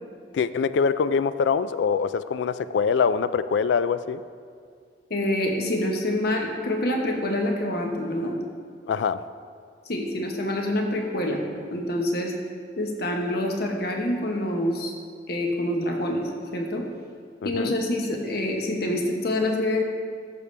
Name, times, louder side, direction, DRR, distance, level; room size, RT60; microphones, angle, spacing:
voice 1, 0.3-4.2 8.9-9.2 17.4-17.7, left 6 dB, 90° left, 14 dB, 0.3 m, -24 dB
voice 2, 5.1-8.3 9.8-11.4 11.7-12.3 12.8-14.9 15.3-16.2 16.5-16.8 17.4-19.8, left 1 dB, 60° left, 1 dB, 1.2 m, -26 dB
13.5 x 6.8 x 3.3 m, 2.1 s
head